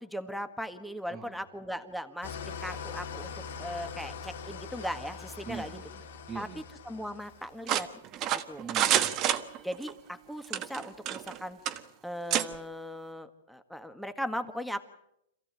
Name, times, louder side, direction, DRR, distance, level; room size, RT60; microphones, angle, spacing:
voice 1, 0.0-3.3 3.6-5.8 6.3-6.5 6.9-7.9 8.3-8.7 9.6-11.6 12.0-14.8, equal, ahead, 8 dB, 1.6 m, -38 dB
voice 2, 1.1-1.4 5.4-6.6 8.6-9.1, right 6 dB, 15° right, 0 dB, 1.8 m, -43 dB
Engine starting / Idling, 2.2-7.6, left 6 dB, 75° left, 2.8 m, -42 dB
sound 1, 7.7-9.9 10.4-11.4 11.7-11.8 12.3-12.5, right 11 dB, 30° right, 1.5 m, -28 dB
27.0 x 16.0 x 9.1 m, 0.81 s
hypercardioid pair, 150°, 0 cm